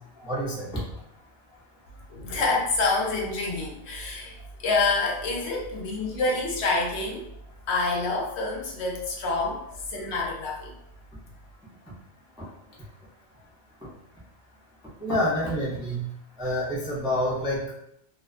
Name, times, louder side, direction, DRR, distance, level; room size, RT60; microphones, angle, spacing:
voice 1, 0.2-0.7 5.1-5.2 15.0-16.0 16.4-17.7, equal, 10° right, -7 dB, 0.3 m, -27 dB
voice 2, 2.1-7.3 7.7-10.7, left 3 dB, 70° left, -1 dB, 0.8 m, -27 dB
2.6 x 2.2 x 2.4 m, 0.78 s
omnidirectional pair, 1.2 m